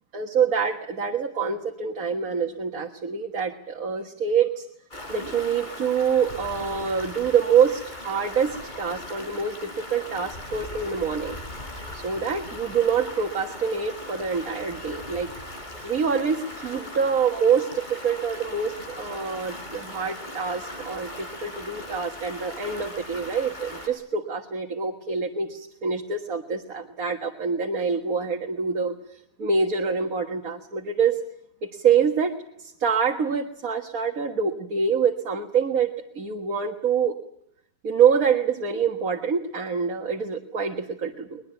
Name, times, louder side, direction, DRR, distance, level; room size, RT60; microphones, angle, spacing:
voice 1, 0.1-4.7 5.1-11.4 11.9-15.3 15.8-31.2 31.6-37.2 37.8-41.4, right 6 dB, 85° right, 3 dB, 2.1 m, -26 dB
Stream, 4.9-23.9, left 1 dB, 35° left, 4.4 m, -39 dB
22.0 x 21.5 x 9.1 m, 0.74 s
omnidirectional pair, 1.4 m